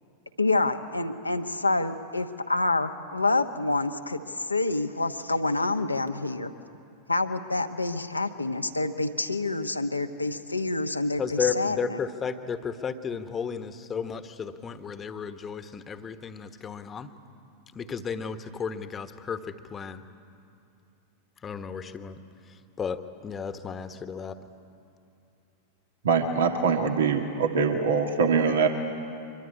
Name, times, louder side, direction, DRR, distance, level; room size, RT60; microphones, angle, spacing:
voice 1, 0.4-6.5 7.1-12.0, left 2 dB, 85° left, 7 dB, 1.2 m, -27 dB
voice 2, 11.2-17.1 17.7-20.0 21.4-22.2 22.8-24.4, left 6 dB, 20° left, 10 dB, 1.3 m, -33 dB
voice 3, 26.0-28.7, right 5 dB, 65° right, 4 dB, 1.7 m, -23 dB
24.5 x 22.5 x 9.8 m, 2.6 s
figure-of-eight pair, 90°, 0 cm